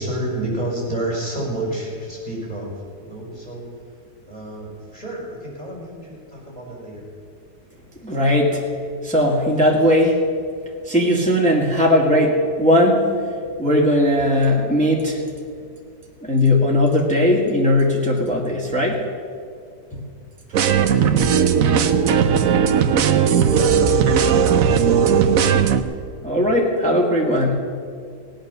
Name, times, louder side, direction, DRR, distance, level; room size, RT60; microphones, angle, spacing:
voice 1, 0.0-3.6 4.3-7.1 21.5-22.5 23.1-25.3, right 1 dB, 30° left, -4 dB, 4.6 m, -30 dB
voice 2, 8.0-8.6 9.0-10.2 10.9-13.2 13.6-15.2 16.2-19.0 19.9-20.0 26.2-27.6, left 1 dB, 5° left, -2 dB, 1.8 m, -18 dB
sound 1, 20.5-25.8, right 7 dB, 65° right, 1.1 m, -17 dB
18.0 x 9.1 x 6.8 m, 2.3 s
omnidirectional pair, 1.7 m